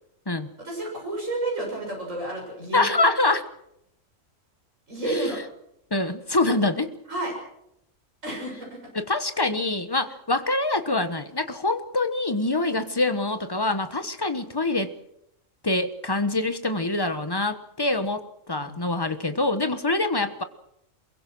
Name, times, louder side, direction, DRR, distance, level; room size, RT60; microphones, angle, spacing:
voice 1, 0.6-2.9 4.9-5.4 7.1-7.3 8.2-8.8 18.6-18.8, right 2 dB, 75° right, -1 dB, 7.1 m, -30 dB
voice 2, 2.7-3.4 5.9-6.9 8.9-14.9 15.6-20.4, left 2 dB, 20° left, 10 dB, 1.2 m, -25 dB
23.0 x 22.5 x 6.2 m, 0.78 s
omnidirectional pair, 1.4 m